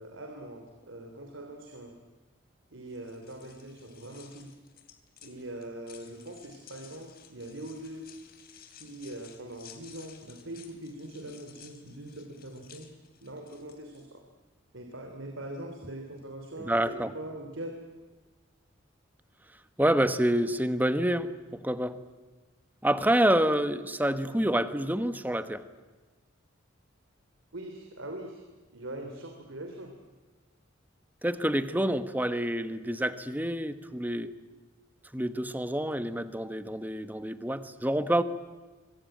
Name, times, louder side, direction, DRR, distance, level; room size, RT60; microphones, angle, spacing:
voice 1, 0.0-2.0 2.7-4.5 5.2-8.1 8.7-12.9 13.2-14.2 14.7-17.8 27.5-28.4 28.7-29.9, right 1 dB, 80° right, 4 dB, 3.1 m, -42 dB
sound 1, 2.9-14.0, left 9 dB, 50° left, 3.3 m, -55 dB
voice 2, 16.6-17.1 19.8-22.0 22.8-25.7 31.2-34.3 35.1-38.2, right 1 dB, 10° right, 11 dB, 1.1 m, -27 dB
25.0 x 23.0 x 9.1 m, 1.3 s
head